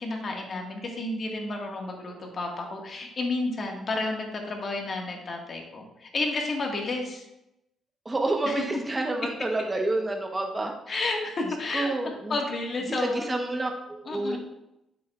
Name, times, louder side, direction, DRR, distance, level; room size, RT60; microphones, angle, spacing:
voice 1, 0.0-7.3 8.4-8.6 10.9-13.3 14.1-14.4, left 2 dB, 45° left, 1 dB, 1.7 m, -31 dB
voice 2, 8.0-10.7 11.7-12.4 13.0-14.4, right 2 dB, 20° right, 2 dB, 1.0 m, -29 dB
8.5 x 7.0 x 2.4 m, 0.89 s
cardioid pair, 90°, 0 cm